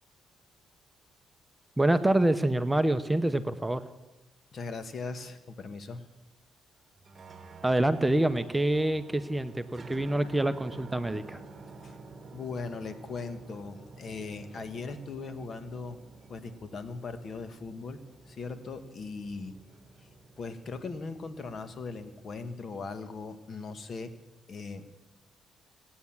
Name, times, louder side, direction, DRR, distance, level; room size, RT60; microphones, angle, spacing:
voice 1, 1.8-3.8 7.6-11.4, right 1 dB, 10° right, 10 dB, 0.7 m, -26 dB
voice 2, 4.5-6.1 11.8-12.0 12.3-16.0 16.3-19.5 20.0-20.1 20.4-24.1 24.5-24.9, left 4 dB, 50° left, 10 dB, 1.4 m, -39 dB
sound 1, 6.9-22.5, right 3 dB, 35° right, 1.4 m, -50 dB
18.0 x 9.5 x 7.3 m, 1.0 s
cardioid pair, 90°, 0 cm